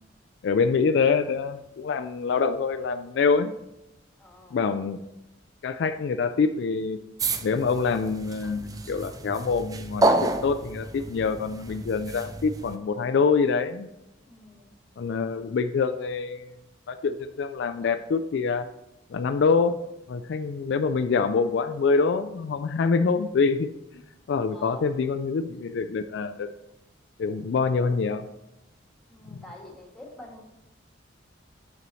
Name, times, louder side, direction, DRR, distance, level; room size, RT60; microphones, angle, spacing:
voice 1, 0.4-3.5 4.5-5.0 5.6-7.0 7.4-13.9 15.0-16.5 16.9-18.7 19.1-19.8 20.1-23.7 23.9-24.0 24.3-26.5 27.2-28.2 29.3-29.4, left 5 dB, 65° left, 8 dB, 0.3 m, -25 dB
voice 2, 4.2-4.6 14.2-14.7 24.5-24.9 29.1-30.4, left 1 dB, 5° left, -3 dB, 1.6 m, -47 dB
sound 1, 7.2-12.8, right 2 dB, 20° right, 0.3 m, -29 dB
7.0 x 6.7 x 3.1 m, 0.92 s
head